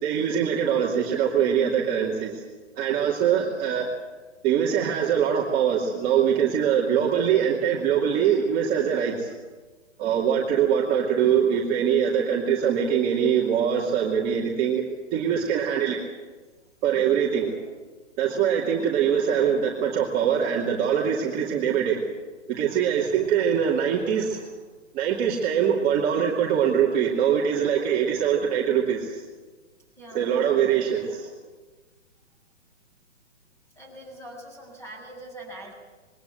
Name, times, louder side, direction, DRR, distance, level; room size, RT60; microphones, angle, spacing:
voice 1, 0.0-2.4 2.8-3.9 4.4-9.3 10.0-14.9 15.1-16.0 16.8-17.5 18.2-22.1 22.5-24.5 24.9-29.2 30.1-31.3, right 8 dB, 25° right, -3 dB, 2.5 m, -23 dB
voice 2, 30.0-30.3 33.7-35.7, right 1 dB, 5° left, 2 dB, 6.6 m, -43 dB
21.5 x 18.0 x 8.3 m, 1.3 s
hypercardioid pair, 150°, 37 cm